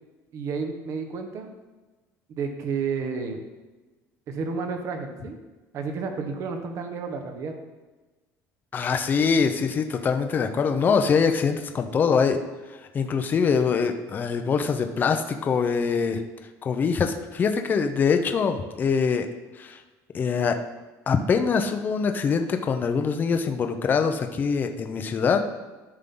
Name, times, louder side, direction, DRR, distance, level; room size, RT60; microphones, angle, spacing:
voice 1, 0.3-1.5 2.3-3.4 4.3-5.4 5.7-7.5, right 5 dB, 45° right, 5 dB, 1.2 m, -31 dB
voice 2, 8.7-12.4 12.9-16.2 16.6-19.3 19.6-19.8 20.1-20.6 21.1-25.4, left 5 dB, 30° left, 6 dB, 0.7 m, -23 dB
13.5 x 5.5 x 3.8 m, 1.2 s
cardioid pair, 150°, 7 cm